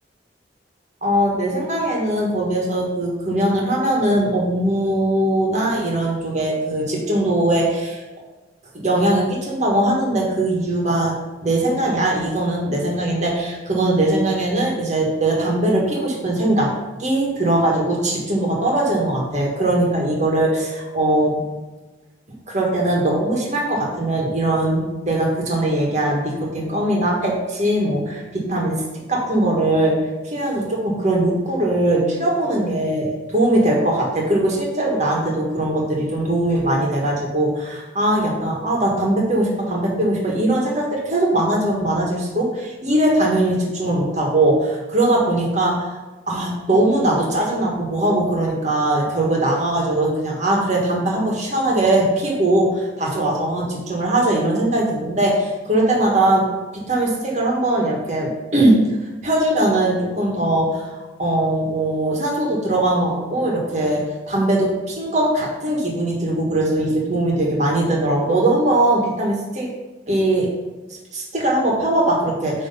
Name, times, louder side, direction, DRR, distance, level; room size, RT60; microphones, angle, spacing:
voice 1, 1.0-8.0 8.7-11.1 11.4-16.7 17.0-21.4 22.5-28.8 29.1-46.0 46.3-56.5 56.7-58.8 59.2-60.9 61.2-69.7 70.1-70.5 71.1-72.7, right 1 dB, 40° right, -2 dB, 1.6 m, -20 dB
9.4 x 3.4 x 5.5 m, 1.2 s
head